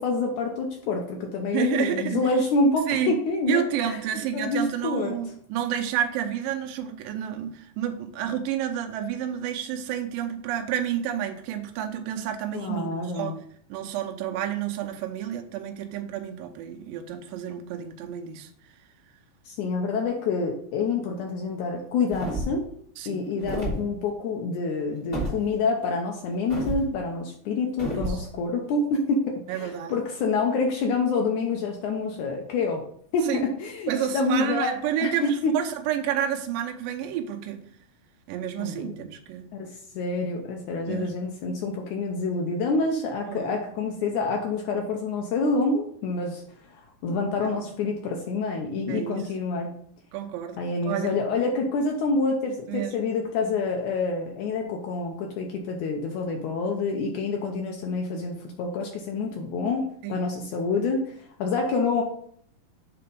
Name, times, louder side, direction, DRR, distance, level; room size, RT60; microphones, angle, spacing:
voice 1, 0.0-4.0 4.3-5.1 12.5-13.4 19.5-22.7 23.1-32.8 33.1-34.7 35.0-35.1 35.4-35.5 38.6-39.1 39.5-46.4 46.7-49.7 50.6-59.8 60.1-62.0, left 3 dB, 85° left, 1 dB, 1.7 m, -27 dB
voice 2, 1.5-2.2 2.9-3.2 3.5-13.4 13.7-18.5 23.0-23.2 27.9-28.2 29.5-30.0 33.3-33.4 33.9-37.6 38.3-39.5 40.9-41.1 43.3-43.6 47.4-47.6 48.9-49.3 50.1-51.2 52.7-53.0 60.0-60.2, right 10 dB, 75° right, 4 dB, 2.3 m, -30 dB
sound 1, 22.1-22.7 23.4-23.8 25.1-25.4 26.5-26.8 27.8-28.2, right 1 dB, 20° left, 1.6 m, -30 dB
6.8 x 4.2 x 5.2 m, 0.62 s
omnidirectional pair, 4.5 m